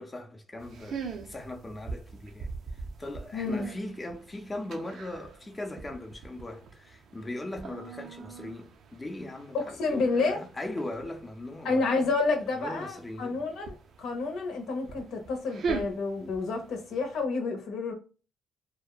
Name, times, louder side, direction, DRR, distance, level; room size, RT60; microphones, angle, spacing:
voice 1, 0.0-11.8 12.5-13.5, left 1 dB, 20° left, 0.6 m, -39 dB
sound 1, 0.6-17.2, right 5 dB, 65° right, 0.5 m, -42 dB
voice 2, 3.3-3.7 9.5-10.4 11.6-17.9, left 3 dB, 80° left, 0.8 m, -29 dB
2.8 x 2.1 x 2.3 m
cardioid pair, 90°, 0 cm